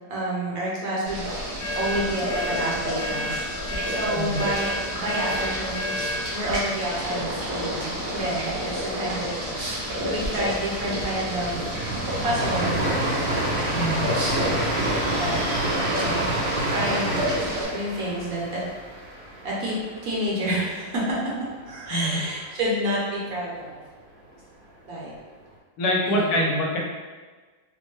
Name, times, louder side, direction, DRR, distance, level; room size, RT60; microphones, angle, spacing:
voice 1, 0.1-1.2 1.8-9.3 9.6-9.8 10.1-11.8 12.2-13.2 13.5-13.8 14.1-14.4 15.2-15.6 15.9-16.3 16.7-17.2 17.7-18.6 19.4-19.8 20.0-21.2 21.6-23.8 24.8-25.1 26.0-26.4, right 1 dB, 65° right, -5 dB, 1.1 m, -29 dB
Boiling, 1.1-17.7, equal, 85° right, 1.8 m, -30 dB
sound 1, 1.6-6.3, left 1 dB, 50° left, 1.0 m, -31 dB
sound 2, 6.9-20.6 21.0-21.1 21.4-22.0, right 1 dB, 45° right, 0.7 m, -29 dB
voice 2, 13.7-14.1 21.9-22.2 25.8-26.8, equal, 70° left, -1 dB, 1.2 m, -24 dB
4.3 x 2.1 x 3.1 m, 1.4 s
omnidirectional pair, 1.7 m